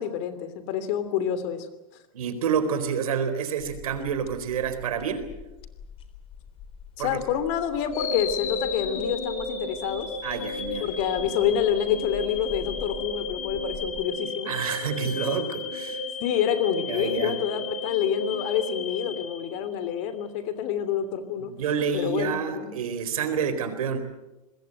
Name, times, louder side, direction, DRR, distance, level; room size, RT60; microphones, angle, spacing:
voice 1, 0.0-1.7 7.0-10.1 10.8-14.8 16.2-21.5 21.8-22.8, left 9 dB, 55° left, 12 dB, 3.0 m, -28 dB
voice 2, 2.1-5.3 7.0-7.2 10.2-10.9 14.5-16.0 16.9-17.3 21.4-24.0, right 7 dB, 85° right, 9 dB, 4.2 m, -28 dB
sound 1, 3.6-14.1, left 7 dB, 30° left, 3.7 m, -45 dB
sound 2, 7.9-20.0, left 3 dB, 80° left, 5.6 m, -33 dB
25.5 x 21.0 x 7.9 m, 1.0 s
supercardioid pair, 130°, 18 cm